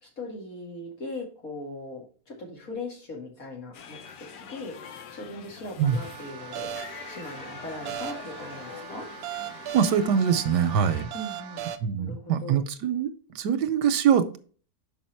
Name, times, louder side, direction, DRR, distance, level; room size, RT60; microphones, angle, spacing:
voice 1, 0.0-4.7 5.1-6.7 7.1-9.0 11.1-12.6, left 2 dB, 55° left, 0 dB, 2.4 m, -39 dB
sound 1, 3.7-11.0, left 7 dB, 85° left, 1.5 m, -44 dB
sound 2, 5.9-11.8, right 9 dB, 70° right, 1.1 m, -38 dB
voice 2, 9.7-11.1 11.8-14.4, right 8 dB, 90° right, 11 dB, 1.3 m, -23 dB
6.2 x 4.9 x 4.4 m, 0.41 s
omnidirectional pair, 1.7 m